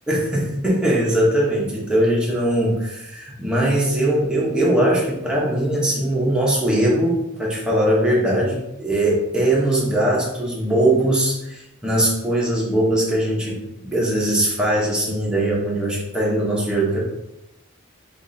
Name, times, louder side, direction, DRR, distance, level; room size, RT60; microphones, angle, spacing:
voice 1, 0.1-17.0, right 1 dB, 5° right, -4 dB, 1.1 m, -20 dB
5.7 x 3.2 x 2.8 m, 0.88 s
head